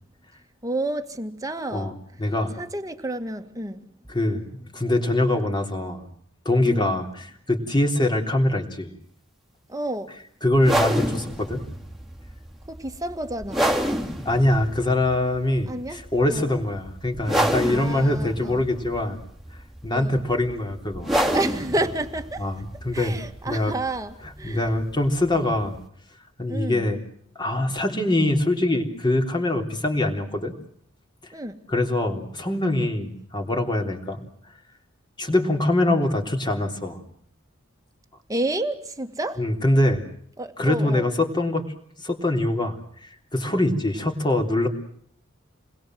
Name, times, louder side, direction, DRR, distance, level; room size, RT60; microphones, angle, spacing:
voice 1, 0.6-1.9 2.6-3.9 6.7-7.0 9.7-10.1 12.7-13.7 15.7-16.5 17.7-18.6 19.9-20.2 21.3-22.5 22.9-24.7 26.5-26.9 31.3-31.6 38.3-39.4 40.4-41.1, right 2 dB, 15° right, 2.0 m, -30 dB
voice 2, 2.2-2.6 4.1-6.1 6.5-8.9 10.4-11.6 14.3-19.2 19.8-21.3 22.4-23.2 23.5-23.7 24.4-25.8 26.4-27.0 27.4-30.5 31.2-31.3 31.7-34.2 35.2-37.0 39.4-40.1 40.6-41.7 42.0-44.7, left 1 dB, 20° left, 3.6 m, -23 dB
sound 1, 10.5-25.9, right 1 dB, ahead, 2.8 m, -29 dB
29.0 x 21.5 x 7.8 m
head